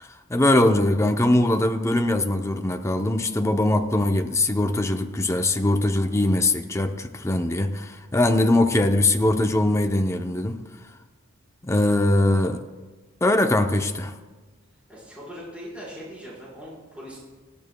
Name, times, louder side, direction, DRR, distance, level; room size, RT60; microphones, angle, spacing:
voice 1, 0.0-10.6 11.6-12.6 13.2-14.1, left 1 dB, 15° left, 6 dB, 0.6 m, -21 dB
voice 2, 14.9-17.2, equal, 5° right, -9 dB, 4.4 m, -40 dB
19.5 x 14.5 x 2.2 m, 1.3 s
head